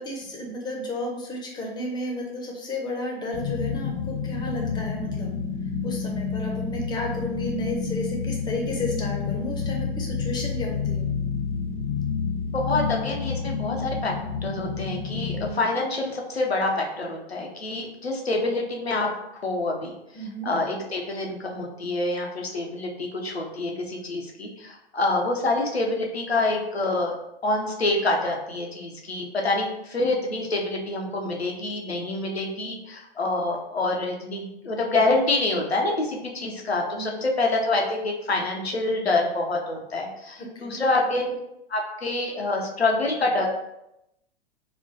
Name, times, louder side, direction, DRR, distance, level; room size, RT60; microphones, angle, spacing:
voice 1, 0.0-5.3 5.8-11.1 20.1-20.5 36.9-37.2 40.5-40.8, left 1 dB, 15° left, 0 dB, 0.6 m, -32 dB
sound 1, 3.3-15.5, left 5 dB, 50° left, 0.7 m, -29 dB
voice 2, 12.5-14.2 14.4-27.2 27.4-41.4 41.7-43.5, left 2 dB, 85° left, 1 dB, 0.7 m, -26 dB
4.2 x 2.2 x 2.6 m, 0.85 s
figure-of-eight pair, 95°, 31 cm